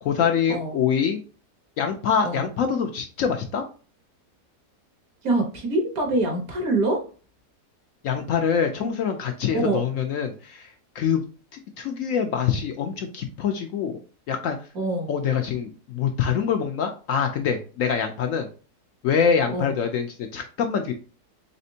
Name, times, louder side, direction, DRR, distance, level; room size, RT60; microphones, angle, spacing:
voice 1, 0.0-1.2 1.8-3.6 8.0-11.2 11.5-14.0 14.3-14.7 15.1-18.5 19.0-20.9, left 7 dB, 70° left, 5 dB, 0.8 m, -25 dB
voice 2, 5.2-7.0 9.5-9.8 14.7-15.1 19.5-19.7, right 2 dB, 65° right, 2 dB, 1.7 m, -25 dB
4.2 x 3.5 x 2.7 m, 0.37 s
omnidirectional pair, 1.7 m